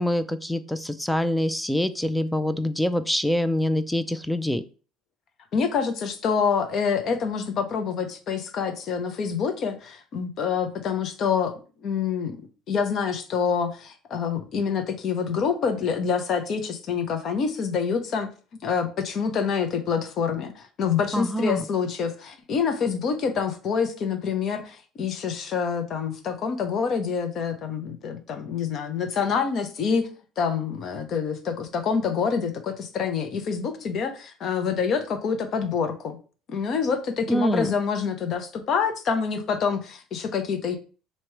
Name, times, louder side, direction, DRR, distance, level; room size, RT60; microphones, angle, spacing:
voice 1, 0.0-4.6 21.1-21.6 37.3-37.7, left 1 dB, 5° left, 12 dB, 0.3 m, -25 dB
voice 2, 5.5-11.5 11.8-12.4 12.7-18.3 18.6-30.1 30.4-36.2 36.5-40.8, left 6 dB, 40° left, 7 dB, 0.7 m, -26 dB
3.1 x 2.9 x 4.5 m, 0.37 s
cardioid pair, 145°, 0 cm